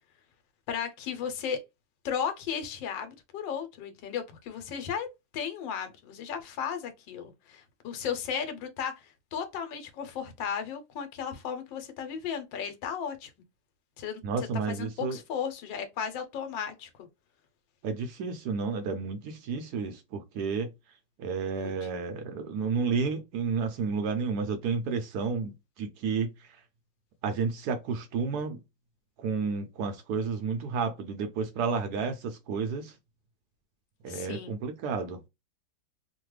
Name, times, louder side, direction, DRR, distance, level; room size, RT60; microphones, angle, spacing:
voice 1, 0.7-1.6 2.0-5.1 5.3-13.3 14.0-14.2 14.7-17.1 21.5-21.7 34.1-34.6, left 7 dB, 75° left, 1.4 m, -35 dB
voice 2, 14.2-15.2 17.8-20.7 21.2-26.5 27.2-28.6 29.2-32.9 34.0-35.2, right 5 dB, 70° right, 1.0 m, -31 dB
3.1 x 2.2 x 3.1 m
omnidirectional pair, 2.0 m